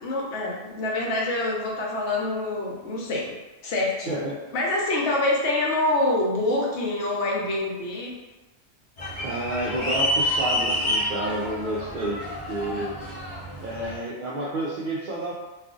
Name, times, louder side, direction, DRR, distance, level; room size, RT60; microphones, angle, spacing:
voice 1, 0.0-3.3 3.6-4.2 4.5-8.1, left 2 dB, 65° left, -2 dB, 1.0 m, -26 dB
voice 2, 4.1-4.4 9.2-13.0 13.6-15.3, right 1 dB, 65° right, -6 dB, 0.5 m, -30 dB
sound 1, 9.0-14.0, equal, 40° left, 0.6 m, -28 dB
2.4 x 2.4 x 3.6 m, 1.1 s
omnidirectional pair, 1.3 m